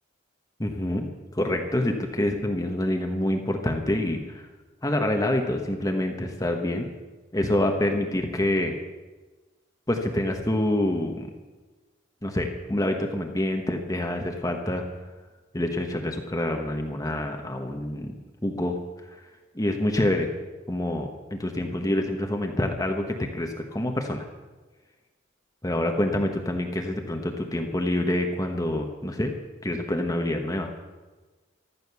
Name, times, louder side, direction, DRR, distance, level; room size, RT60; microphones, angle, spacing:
voice 1, 0.6-1.1 1.3-4.5 4.8-6.9 7.3-8.7 9.9-11.3 12.2-14.8 15.5-18.1 18.4-18.8 19.1-19.2 19.5-20.3 20.7-24.2 25.6-29.3 29.6-30.7, left 1 dB, 15° left, 3 dB, 1.2 m, -26 dB
14.0 x 13.0 x 6.9 m, 1.2 s
head